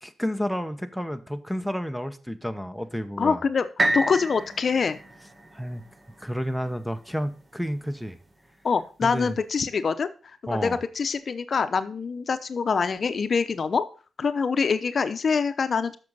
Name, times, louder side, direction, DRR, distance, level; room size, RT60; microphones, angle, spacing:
voice 1, 0.0-3.4 5.5-5.8 6.2-8.2 9.0-9.4 10.5-10.8, equal, ahead, 11 dB, 0.9 m, -30 dB
voice 2, 3.2-3.7 3.9-5.0 8.6-10.1 10.5-13.9 14.2-16.0, left 5 dB, 55° left, 10 dB, 0.8 m, -25 dB
sound 1, 3.8-7.7 8.3-8.4, right 1 dB, 30° right, 1.7 m, -30 dB
7.7 x 6.2 x 5.5 m, 0.36 s
cardioid pair, 75°, 0 cm